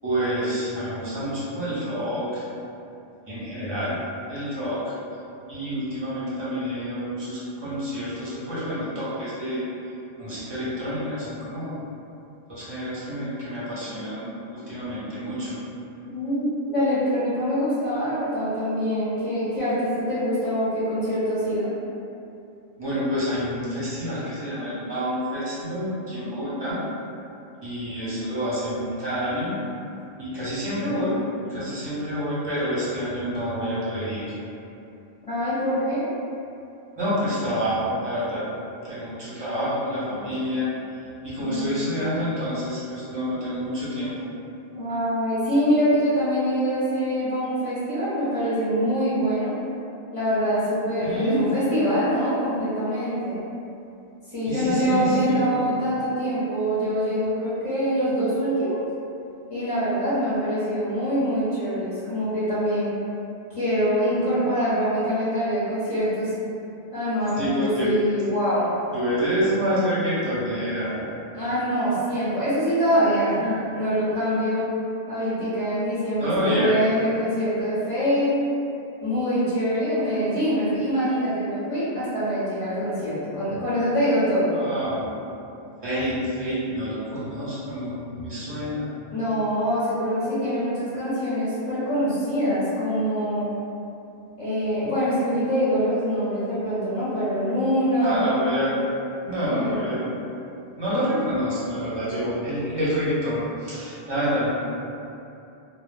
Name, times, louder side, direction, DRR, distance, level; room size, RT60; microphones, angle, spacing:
voice 1, 0.0-2.4 3.3-3.9 4.3-4.9 5.5-9.6 10.2-11.7 12.5-15.6 22.8-26.8 27.6-29.6 30.2-31.2 31.5-34.3 37.0-38.4 38.8-40.7 41.2-44.3 51.0-51.4 54.5-55.7 67.4-67.9 68.9-71.1 76.2-76.8 84.5-85.2 85.8-88.9 98.0-98.7 99.2-100.0 100.8-104.5, equal, 30° right, -10 dB, 0.6 m, -28 dB
voice 2, 16.0-21.7 35.2-36.1 41.3-41.9 44.7-49.5 50.1-53.4 54.3-58.8 59.5-63.0 63.5-66.3 66.9-68.7 71.3-74.7 75.1-78.3 79.0-84.5 89.1-93.5 94.4-98.4 99.4-100.1, equal, 35° left, -12 dB, 0.7 m, -24 dB
2.0 x 2.0 x 3.1 m, 2.7 s
omnidirectional pair, 1.1 m